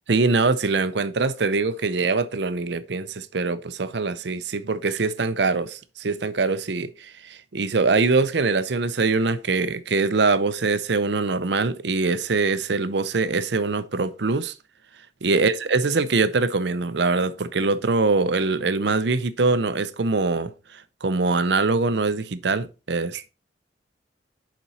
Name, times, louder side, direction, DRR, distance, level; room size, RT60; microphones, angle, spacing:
voice 1, 0.1-14.5 15.2-23.3, right 3 dB, 70° right, 0.6 m, -23 dB
7.1 x 5.2 x 4.2 m
head